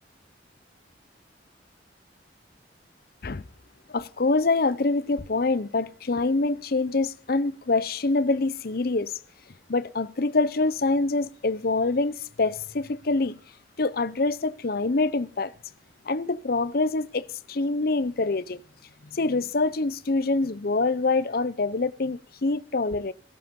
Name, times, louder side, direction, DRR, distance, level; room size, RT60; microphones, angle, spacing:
voice 1, 3.9-9.1 9.7-13.4 13.8-15.5 16.1-18.6 19.1-23.1, left 3 dB, 55° left, 0.7 m, -25 dB
17.0 x 15.5 x 5.3 m
head